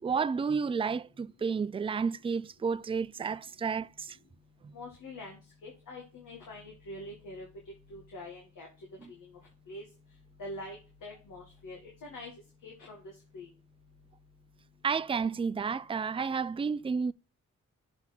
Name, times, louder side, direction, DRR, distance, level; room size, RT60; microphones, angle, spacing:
voice 1, 0.0-4.2 4.6-4.7 9.0-9.1 14.8-17.1, right 5 dB, 20° right, 0.4 m, -31 dB
voice 2, 4.7-7.5 7.9-8.7 9.1-9.2 9.7-9.8 10.4-12.3 12.6-13.0 13.3-13.5, left 1 dB, 75° left, 2.1 m, -44 dB
7.0 x 3.9 x 5.9 m
supercardioid pair, 45°, 32 cm